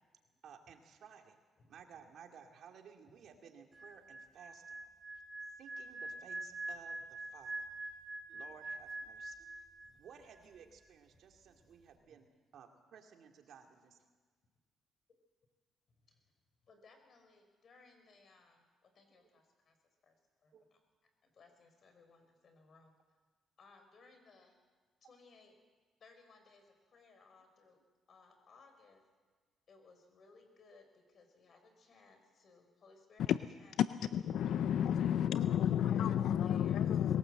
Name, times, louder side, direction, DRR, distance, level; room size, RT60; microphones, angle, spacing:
voice 1, 0.4-1.4 1.7-4.8 5.6-7.7 8.3-9.6 10.0-12.3 12.5-14.1 19.1-19.2 20.5-20.7, right 7 dB, 70° right, 4 dB, 2.4 m, -57 dB
sound 1, 3.7-10.1 10.4-10.6, right 2 dB, 30° right, 3.2 m, -45 dB
voice 2, 16.6-19.7 20.0-20.1 20.4-20.8 21.2-22.9 23.6-24.6 25.0-25.5 26.0-27.8 28.1-29.0 29.7-33.7 34.0-34.3 35.0-37.0, left 4 dB, 55° left, 6 dB, 4.8 m, -63 dB
voice 3, 34.1-37.2, left 10 dB, 75° left, 13 dB, 0.5 m, -31 dB
21.0 x 17.5 x 7.8 m, 1.4 s
cardioid pair, 90°, 0 cm